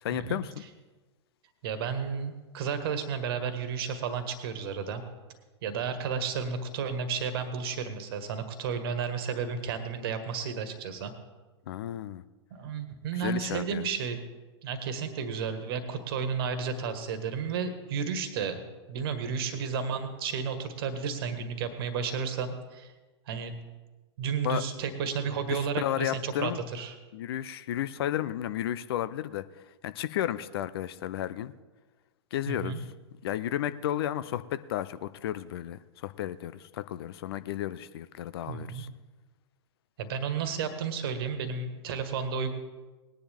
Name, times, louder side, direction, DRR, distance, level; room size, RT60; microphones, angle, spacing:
voice 1, 0.0-0.6 11.7-12.2 13.1-13.9 24.4-24.6 25.5-26.6 27.1-29.4 29.8-31.5 32.3-32.9 33.2-38.9, left 12 dB, 55° left, 14 dB, 0.6 m, -33 dB
voice 2, 1.6-5.0 5.6-11.1 12.5-14.2 14.6-18.6 18.9-22.9 23.3-23.5 24.2-26.9 32.5-32.8 38.5-38.8 40.0-42.5, right 6 dB, 55° right, 9 dB, 1.6 m, -32 dB
19.5 x 10.0 x 3.5 m, 1.2 s
figure-of-eight pair, 100°, 15 cm